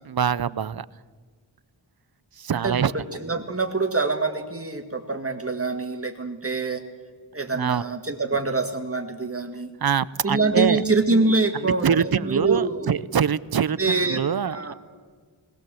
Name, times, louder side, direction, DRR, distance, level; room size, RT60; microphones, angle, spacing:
voice 1, 0.1-0.9 2.4-2.9 7.5-7.8 9.8-10.8 11.6-14.7, right 8 dB, 55° right, 0.6 m, -24 dB
voice 2, 2.5-6.8 7.3-9.7 10.2-12.9 13.8-14.2 14.5-14.7, right 3 dB, 30° right, 2.0 m, -25 dB
20.0 x 18.5 x 7.7 m
wide cardioid pair, 70°, 46 cm